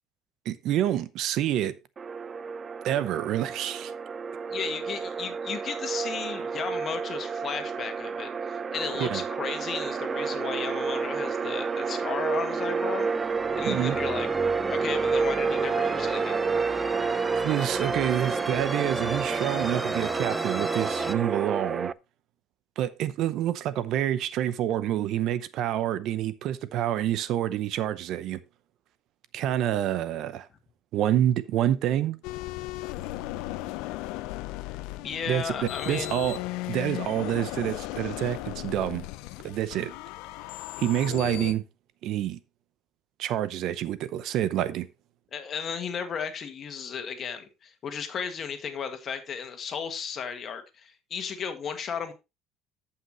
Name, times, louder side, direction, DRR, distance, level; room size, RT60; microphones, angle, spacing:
voice 1, 0.4-1.7 2.8-3.9 9.0-9.2 13.7-14.0 17.3-21.9 22.8-28.4 29.3-30.5 30.9-32.2 35.3-36.4 36.7-39.1 39.4-39.9 40.8-41.6 42.0-42.4 43.2-44.9, right 11 dB, 65° right, 0.7 m, -27 dB
sound 1, 2.0-21.9, right 5 dB, 30° right, 0.4 m, -30 dB
voice 2, 4.5-14.3 14.7-16.4 35.0-36.2 45.3-52.1, left 6 dB, 45° left, 1.7 m, -34 dB
sound 2, 9.9-21.1, left 1 dB, 5° left, 0.7 m, -37 dB
sound 3, 32.2-41.5, left 17 dB, 85° left, 0.6 m, -36 dB
14.0 x 5.8 x 3.0 m
cardioid pair, 110°, 0 cm